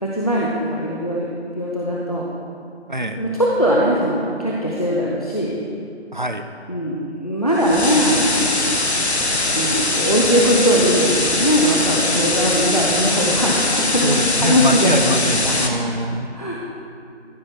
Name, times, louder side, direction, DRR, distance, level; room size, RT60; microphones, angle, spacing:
voice 1, 0.0-1.3 1.6-2.2 3.2-5.6 6.7-8.5 9.5-15.0 15.4-15.6 16.3-16.6, equal, 35° left, -4 dB, 0.7 m, -20 dB
voice 2, 2.9-3.2 6.1-6.5 14.0-16.3, right 1 dB, 45° right, 7 dB, 0.5 m, -23 dB
sound 1, 7.6-15.7, left 2 dB, 65° left, 1.3 m, -21 dB
14.0 x 5.9 x 4.8 m, 2.5 s
figure-of-eight pair, 175°, 35 cm